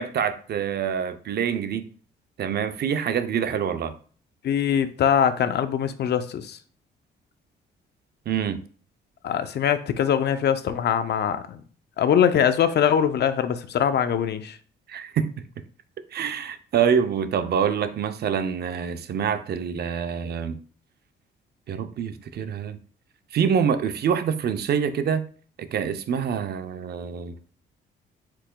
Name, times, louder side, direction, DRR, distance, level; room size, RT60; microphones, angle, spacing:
voice 1, 0.0-1.9 2.4-3.9 8.3-8.6 14.9-15.3 16.1-20.5 21.7-22.8 23.3-25.2 25.6-27.3, right 7 dB, 55° right, 0.5 m, -26 dB
voice 2, 4.4-6.6 9.2-11.6 12.0-14.6, left 8 dB, 55° left, 0.5 m, -22 dB
4.8 x 4.6 x 2.2 m
cardioid pair, 90°, 20 cm